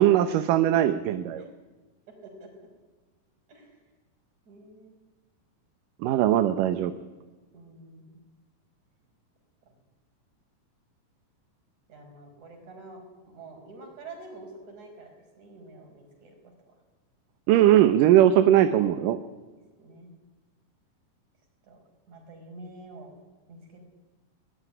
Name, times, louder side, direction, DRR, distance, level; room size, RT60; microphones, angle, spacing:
voice 1, 0.0-1.4 6.0-6.9 17.5-19.2, right 12 dB, 75° right, 10 dB, 2.5 m, -20 dB
voice 2, 2.2-2.7 3.5-3.8 4.5-5.0 7.5-8.2 9.7-9.8 11.9-13.0 13.3-16.7 19.8-20.1 21.6-21.8 22.1-23.1 23.5-23.8, right 2 dB, 55° right, 4 dB, 6.6 m, -47 dB
23.0 x 19.5 x 10.0 m, 1.3 s
omnidirectional pair, 4.0 m